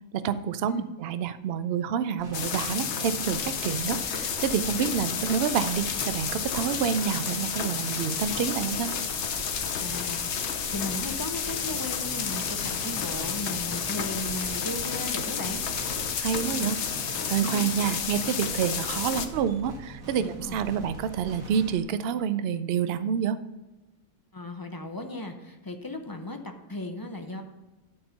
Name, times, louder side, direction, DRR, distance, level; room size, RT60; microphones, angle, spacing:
voice 1, 0.1-8.9 16.2-16.8 17.1-23.4, right 8 dB, 60° right, 13 dB, 0.6 m, -28 dB
sound 1, 2.2-21.8, right 3 dB, 80° right, 1.8 m, -43 dB
sound 2, 2.3-19.3, left 7 dB, 60° left, 1.0 m, -31 dB
voice 2, 9.8-12.6 12.8-15.6 17.4-17.7 20.2-20.6 24.3-27.4, left 1 dB, 25° left, 5 dB, 0.5 m, -36 dB
12.0 x 4.4 x 5.6 m, 1.1 s
omnidirectional pair, 1.5 m